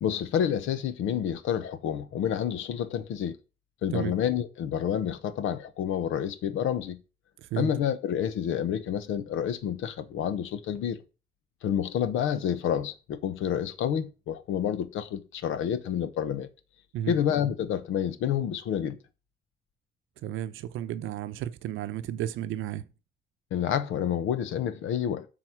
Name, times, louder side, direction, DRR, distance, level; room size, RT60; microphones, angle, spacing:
voice 1, 0.0-3.4 3.8-7.0 7.6-11.0 11.6-16.5 17.1-19.0 23.5-25.3, left 9 dB, 85° left, 0.9 m, -29 dB
voice 2, 7.4-7.7 16.9-17.2 20.2-22.8, right 11 dB, 85° right, 0.7 m, -33 dB
7.6 x 4.2 x 6.0 m
cardioid pair, 90°, 20 cm